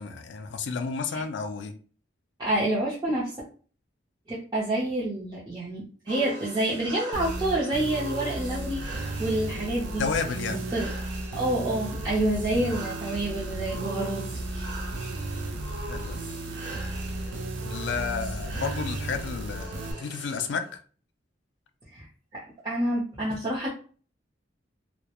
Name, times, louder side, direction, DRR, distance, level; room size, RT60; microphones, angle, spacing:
voice 1, 0.0-1.7 10.0-10.6 15.8-16.6 17.6-20.6, left 5 dB, 70° left, 0.4 m, -32 dB
voice 2, 2.4-3.3 4.3-10.1 10.5-10.9 11.3-14.2 14.5-14.7 21.9-22.1 22.3-23.7, right 1 dB, 20° right, 0.6 m, -28 dB
sound 1, 6.1-20.7, right 2 dB, 70° right, 0.8 m, -42 dB
sound 2, 7.1-19.9, right 2 dB, 85° right, 0.4 m, -34 dB
2.3 x 2.0 x 2.9 m
head